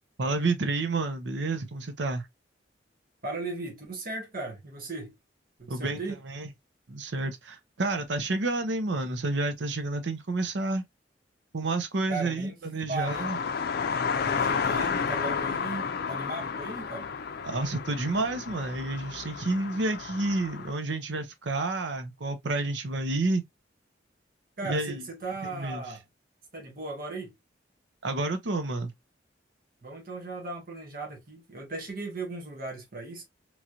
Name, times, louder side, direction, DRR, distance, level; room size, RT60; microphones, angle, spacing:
voice 1, 0.2-2.3 5.7-6.0 6.3-6.5 6.9-10.8 11.5-13.4 17.4-23.4 24.6-25.0 25.5-25.8 28.0-28.9, right 2 dB, 75° right, 0.7 m, -30 dB
voice 2, 3.2-5.1 5.6-6.2 12.1-12.6 12.9-13.3 14.2-17.1 24.6-26.0 26.5-27.3 29.8-33.2, right 3 dB, 55° right, 1.2 m, -37 dB
sound 1, 13.0-20.7, left 6 dB, 55° left, 0.5 m, -31 dB
3.1 x 2.9 x 2.4 m
head